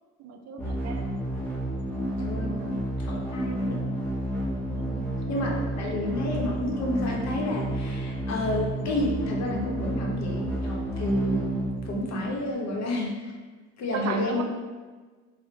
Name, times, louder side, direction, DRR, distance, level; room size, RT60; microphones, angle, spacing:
voice 1, 0.2-1.2 2.5-2.7 4.7-5.1 13.9-14.4, right 6 dB, 60° right, 4 dB, 0.4 m, -36 dB
sound 1, 0.6-12.5, right 1 dB, 5° left, 0.8 m, -31 dB
voice 2, 2.2-2.6 3.0-3.8 5.3-13.3 13.8-14.4, left 1 dB, 60° left, -1 dB, 0.7 m, -30 dB
3.1 x 2.1 x 3.2 m, 1.4 s
cardioid pair, 90°, 30 cm